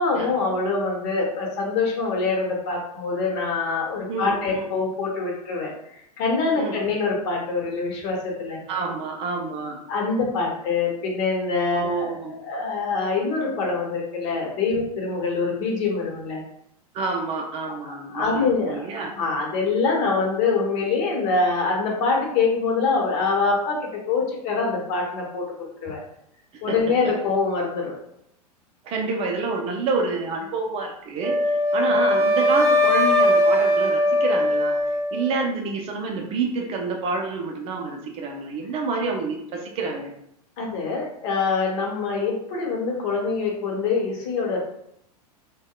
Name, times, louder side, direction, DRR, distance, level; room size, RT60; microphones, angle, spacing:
voice 1, 0.0-8.6 9.9-16.4 17.8-18.8 19.2-23.8 24.1-26.0 26.6-27.9 40.6-44.6, left 4 dB, 45° left, -1 dB, 0.9 m, -24 dB
voice 2, 4.1-4.7 6.6-6.8 8.7-9.8 11.7-12.4 16.9-19.1 26.5-26.7 28.8-34.7 35.1-40.1, right 4 dB, 30° right, 1 dB, 0.5 m, -28 dB
Wind instrument woodwind instrument, 31.2-35.3, left 1 dB, 15° right, 0.9 m, -20 dB
3.5 x 2.1 x 2.2 m, 0.75 s
figure-of-eight pair, 95°, 20 cm